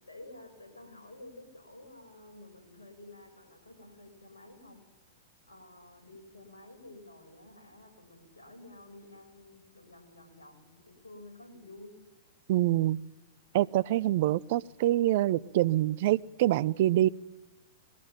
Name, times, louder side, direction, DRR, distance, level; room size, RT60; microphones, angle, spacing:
voice 1, 0.0-4.8 5.5-12.0, left 2 dB, 80° left, 7.2 m, -51 dB
voice 2, 12.5-13.0 13.5-17.1, right 14 dB, 55° right, 0.7 m, -25 dB
22.0 x 18.0 x 9.1 m
figure-of-eight pair, 105°, 0 cm